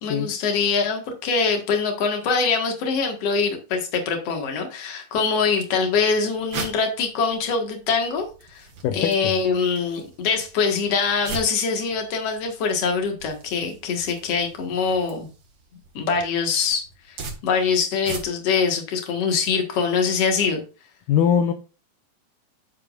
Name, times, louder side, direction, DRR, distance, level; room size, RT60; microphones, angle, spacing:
voice 1, 0.0-8.7 8.9-15.3 15.9-20.6, left 5 dB, 50° left, 2.3 m, -24 dB
sound 1, 5.8-18.6, right 4 dB, 50° right, 2.0 m, -41 dB
voice 2, 8.8-9.3 21.1-21.5, left 8 dB, 80° left, 2.0 m, -21 dB
10.0 x 7.2 x 2.5 m
omnidirectional pair, 4.2 m